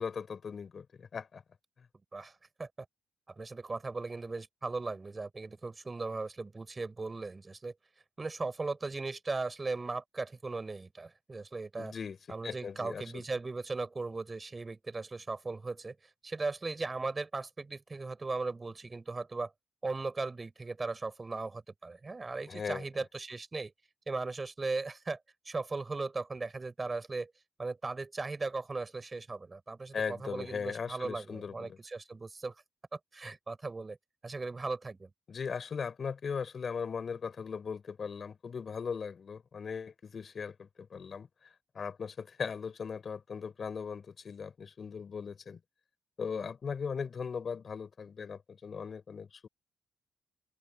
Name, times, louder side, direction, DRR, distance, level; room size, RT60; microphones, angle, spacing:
voice 1, 0.0-1.4 11.8-12.2 12.4-13.2 22.5-22.9 29.9-31.8 35.3-41.3 41.7-45.6 46.2-49.5, left 6 dB, 45° left, 4.1 m, -38 dB
voice 2, 2.1-2.7 3.3-7.7 8.2-11.9 12.3-16.0 16.2-19.5 19.8-23.7 24.1-25.2 25.5-27.3 27.6-32.5 32.9-34.0 34.2-35.1, right 3 dB, 25° right, 5.8 m, -37 dB
cardioid pair, 95°, 0 cm